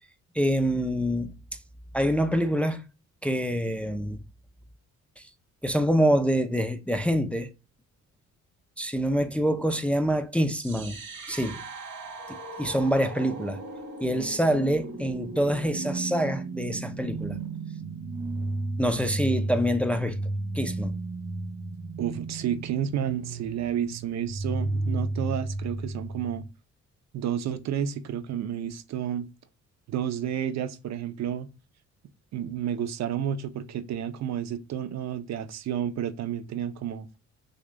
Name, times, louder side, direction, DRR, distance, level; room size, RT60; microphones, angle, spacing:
voice 1, 0.3-1.3 1.9-2.8 3.2-4.2 5.2-5.3 5.6-7.5 8.8-11.0 11.3-11.6 12.3-13.6 14.0-17.4 18.8-20.2 20.5-21.0, equal, 5° left, 0.4 m, -26 dB
sound 1, 10.5-26.5, right 2 dB, 85° right, 2.3 m, -34 dB
voice 2, 22.0-26.4 27.1-29.3 29.9-31.5 32.3-37.1, right 9 dB, 60° right, 0.6 m, -31 dB
6.4 x 2.4 x 2.2 m
cardioid pair, 90°, 30 cm